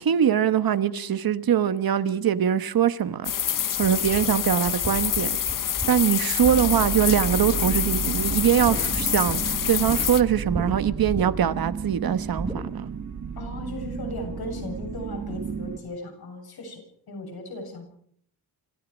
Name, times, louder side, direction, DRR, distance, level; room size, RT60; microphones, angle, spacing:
voice 1, 0.0-3.3 3.8-5.4 5.9-12.9, right 9 dB, 65° right, 1.1 m, -23 dB
sound 1, 3.2-10.2, left 10 dB, 55° left, 0.8 m, -27 dB
sound 2, 3.8-7.1 7.4-8.0 8.3-10.0 10.5-10.7 11.1-11.6 12.4-12.6, right 2 dB, 15° right, 3.0 m, -35 dB
sound 3, 6.4-15.8, right 6 dB, 45° right, 1.5 m, -33 dB
voice 2, 13.4-16.8 17.1-17.9, left 2 dB, 70° left, 7.8 m, -37 dB
26.5 x 15.5 x 6.3 m
wide cardioid pair, 175°, 38 cm